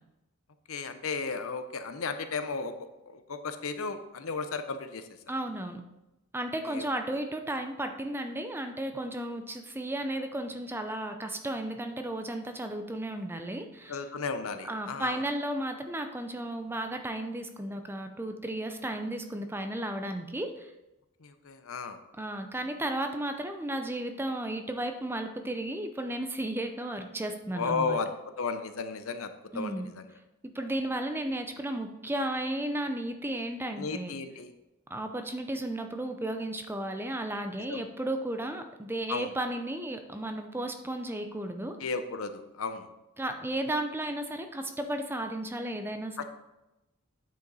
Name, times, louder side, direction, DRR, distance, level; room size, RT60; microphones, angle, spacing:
voice 1, 0.7-5.0 6.7-6.9 13.9-15.2 21.2-22.0 27.5-28.1 28.4-30.0 33.8-34.5 37.7-37.8 39.1-39.3 41.8-42.9 46.2-46.3, left 4 dB, 80° left, 9 dB, 0.7 m, -34 dB
voice 2, 5.3-5.8 6.3-14.0 14.6-20.7 22.1-28.0 29.5-29.9 30.5-34.1 34.9-41.8 43.2-46.2, right 1 dB, 10° right, 6 dB, 0.5 m, -34 dB
9.1 x 5.2 x 4.0 m, 0.97 s
head